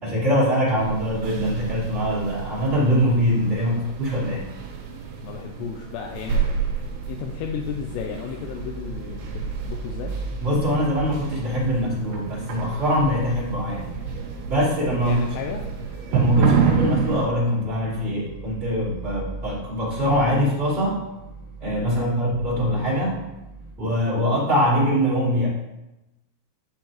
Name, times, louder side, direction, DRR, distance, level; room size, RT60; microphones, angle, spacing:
voice 1, 0.0-4.5 10.4-13.9 14.5-15.2 16.1-21.0 21.6-23.2 23.8-25.5, equal, 20° right, -9 dB, 2.1 m, -23 dB
sound 1, 0.8-17.3, right 6 dB, 75° right, 2.9 m, -29 dB
voice 2, 5.2-10.1 14.9-15.7 21.9-22.2, left 7 dB, 85° left, 2 dB, 2.7 m, -34 dB
sound 2, 6.5-23.7, right 3 dB, 45° right, 0.9 m, -39 dB
11.0 x 5.6 x 2.9 m, 0.96 s
omnidirectional pair, 5.1 m